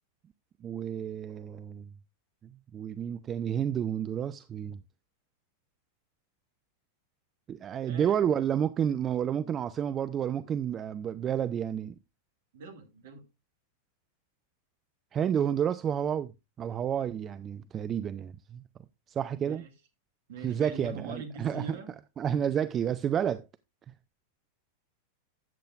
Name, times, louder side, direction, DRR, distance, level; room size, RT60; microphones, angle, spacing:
voice 1, 0.6-1.9 2.4-4.8 7.5-12.0 15.1-16.3 16.6-18.6 19.1-19.6 20.4-21.7 22.2-23.4, right 9 dB, 25° right, 0.4 m, -30 dB
voice 2, 7.8-8.2 12.5-13.2 19.4-19.7 20.3-21.9, right 3 dB, 55° right, 2.2 m, -43 dB
13.5 x 8.5 x 2.4 m
figure-of-eight pair, 90°, 0 cm